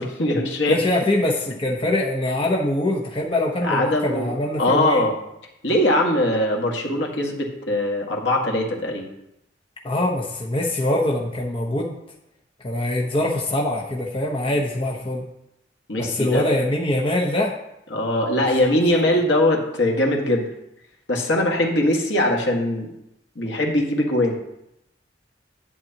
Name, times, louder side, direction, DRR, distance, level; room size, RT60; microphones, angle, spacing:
voice 1, 0.0-0.8 3.6-5.2 5.6-9.0 15.9-16.4 17.9-20.5 21.1-22.9 23.4-24.4, left 1 dB, 75° left, 0 dB, 1.8 m, -21 dB
voice 2, 0.6-5.1 9.8-11.9 12.6-15.3 16.0-17.5 18.5-18.6 19.0-19.1, left 1 dB, 30° left, -2 dB, 1.0 m, -23 dB
11.0 x 9.4 x 2.9 m, 0.83 s
head